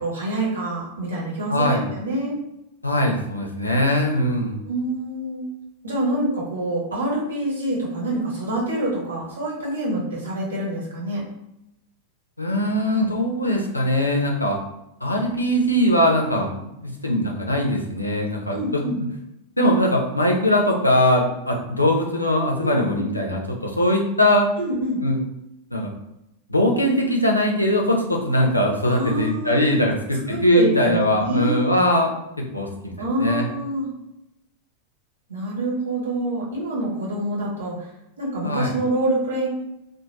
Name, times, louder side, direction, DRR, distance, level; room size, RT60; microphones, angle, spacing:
voice 1, 0.0-2.4 4.6-5.5 5.8-11.2 18.5-19.0 22.6-23.0 24.6-25.0 28.9-29.6 30.3-31.6 33.0-33.9 35.3-37.9 38.2-39.5, right 1 dB, 70° right, -4 dB, 0.9 m, -26 dB
voice 2, 1.5-1.9 2.8-4.6 12.4-14.6 15.0-18.8 19.6-24.5 25.0-25.2 25.7-25.9 26.5-32.9 33.2-33.5 38.4-38.7, left 1 dB, 85° left, 0 dB, 0.5 m, -21 dB
2.4 x 2.1 x 3.0 m, 0.87 s
figure-of-eight pair, 90°, 0 cm